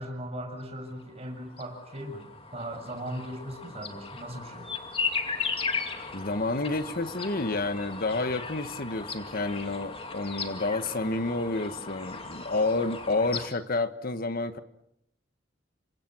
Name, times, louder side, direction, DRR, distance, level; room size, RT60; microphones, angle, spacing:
voice 1, 0.0-4.7, equal, 35° right, 3 dB, 7.0 m, -38 dB
sound 1, 1.2-13.5, left 4 dB, 30° left, 2.6 m, -36 dB
voice 2, 6.1-14.6, left 2 dB, 50° left, 11 dB, 1.5 m, -29 dB
28.5 x 25.0 x 6.3 m, 0.78 s
head